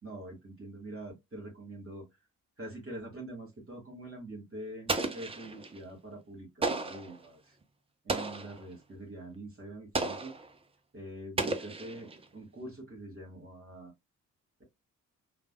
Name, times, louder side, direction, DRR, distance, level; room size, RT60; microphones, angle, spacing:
voice 1, 0.0-2.1 2.6-7.6 8.0-10.3 10.9-13.9, right 1 dB, 30° right, 1.6 m, -45 dB
Explosion, 4.9-5.8 6.6-7.2 8.1-8.6 9.9-10.5 11.4-12.2, right 3 dB, 15° right, 0.5 m, -33 dB
3.2 x 2.2 x 2.2 m
figure-of-eight pair, 40°, 45 cm